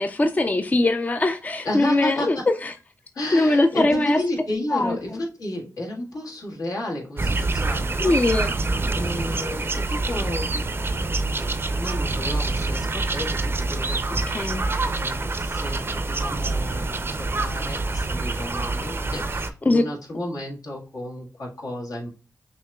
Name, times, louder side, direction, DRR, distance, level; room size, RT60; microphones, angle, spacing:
voice 1, 0.0-2.7 3.3-4.2 4.7-5.2 8.0-8.5 14.3-14.6 19.7-19.8, left 2 dB, 25° left, 0.4 m, -21 dB
voice 2, 1.6-2.5 3.1-8.2 9.0-22.1, left 1 dB, 75° left, 1.6 m, -32 dB
sound 1, 7.2-19.5, right 3 dB, 40° right, 0.5 m, -26 dB
6.0 x 2.9 x 2.3 m
cardioid pair, 60°, 6 cm